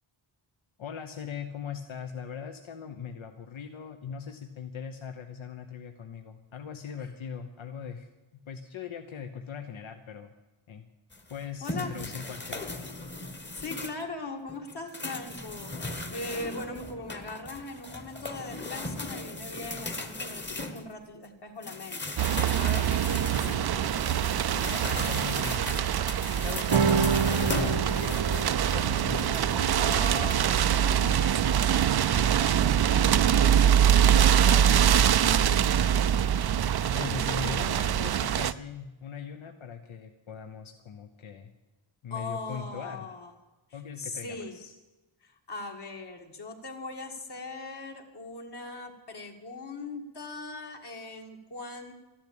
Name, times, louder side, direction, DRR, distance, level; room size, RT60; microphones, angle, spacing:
voice 1, 0.8-8.1 8.5-10.3 10.7-10.9 11.3-12.9 24.5-25.9 26.4-27.9 28.2-29.4 34.0-35.8 36.9-41.5 42.0-43.1 43.7-44.7, left 7 dB, 75° left, 5 dB, 1.1 m, -40 dB
sound 1, 11.1-14.1 14.5-21.3 21.6-30.4, left 2 dB, 20° left, 1.2 m, -38 dB
voice 2, 11.6-12.0 13.5-24.0 29.2-33.7 36.9-37.6 42.1-43.3 44.0-44.6 45.2-51.9, left 3 dB, 55° left, 2 dB, 2.0 m, -40 dB
Soft rain on a tile roof, 22.2-38.5, right 9 dB, 55° right, 0.5 m, -24 dB
sound 2, 26.7-33.4, right 6 dB, 85° right, 0.9 m, -31 dB
13.5 x 11.5 x 8.8 m, 1.1 s
wide cardioid pair, 160°, 48 cm